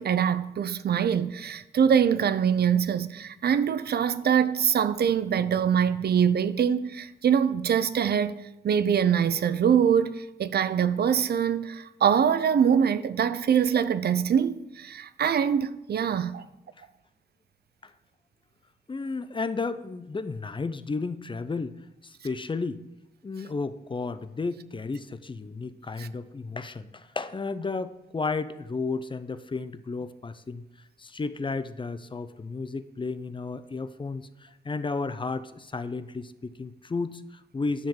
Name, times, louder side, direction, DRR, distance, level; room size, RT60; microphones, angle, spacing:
voice 1, 0.0-8.3 8.6-16.4 26.0-26.1, right 8 dB, 65° right, 0.5 m, -24 dB
voice 2, 18.9-22.8 23.2-30.6 31.0-37.9, left 4 dB, 30° left, 0.5 m, -33 dB
10.0 x 3.7 x 7.1 m
cardioid pair, 80°, 18 cm